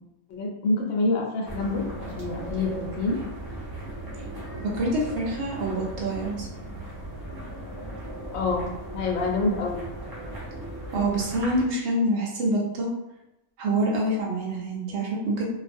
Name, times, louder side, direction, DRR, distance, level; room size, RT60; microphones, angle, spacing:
voice 1, 0.3-3.2 8.3-8.6 8.9-9.9, left 3 dB, 65° left, -1 dB, 0.9 m, -27 dB
sound 1, 1.4-11.7, right 1 dB, 35° right, 0.3 m, -37 dB
voice 2, 4.6-6.5 10.9-12.9 13.6-15.4, right 1 dB, 65° right, -2 dB, 0.7 m, -26 dB
2.4 x 2.0 x 2.5 m, 0.92 s
omnidirectional pair, 1.5 m